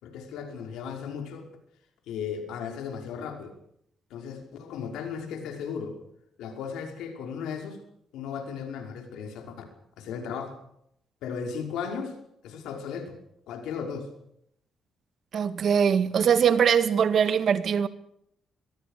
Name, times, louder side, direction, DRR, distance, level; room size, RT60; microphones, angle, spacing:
voice 1, 0.0-1.5 2.1-3.5 4.1-6.0 6.4-7.8 8.1-9.5 10.0-10.6 11.2-12.2 12.4-13.2 13.5-14.1, left 6 dB, 85° left, 5.5 m, -35 dB
voice 2, 15.3-17.9, right 7 dB, 60° right, 1.8 m, -22 dB
24.5 x 22.0 x 6.7 m
cardioid pair, 90°, 0 cm